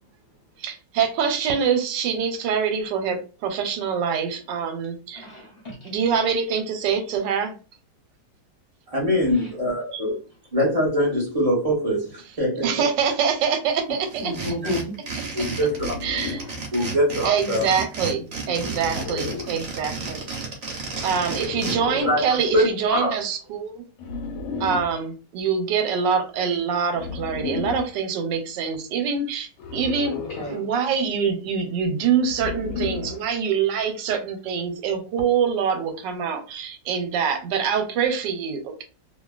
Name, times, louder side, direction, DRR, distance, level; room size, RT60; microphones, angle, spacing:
voice 1, 0.6-5.3 5.8-7.5 9.9-10.0 12.6-14.3 16.0-16.4 17.2-20.3 21.0-23.8 24.6-30.1 30.5-38.8, right 6 dB, 90° right, 6 dB, 1.3 m, -25 dB
voice 2, 5.1-5.9 9.3-9.5 14.2-15.0 21.4-21.8 30.3-30.6, left 1 dB, 45° left, -3 dB, 0.9 m, -32 dB
voice 3, 8.9-10.2 10.5-12.9 15.3-15.9 16.7-17.7 18.9-19.0 20.9-21.0 22.1-23.1, equal, 25° right, -3 dB, 0.8 m, -23 dB
sound 1, 14.1-21.8, right 4 dB, 50° right, 1.0 m, -32 dB
sound 2, 15.7-16.6 18.6-19.6 21.3-22.3 24.0-25.0 26.9-27.9 29.6-30.6 32.3-33.3, left 5 dB, 75° left, 1.2 m, -33 dB
2.8 x 2.4 x 2.3 m, 0.34 s
omnidirectional pair, 1.9 m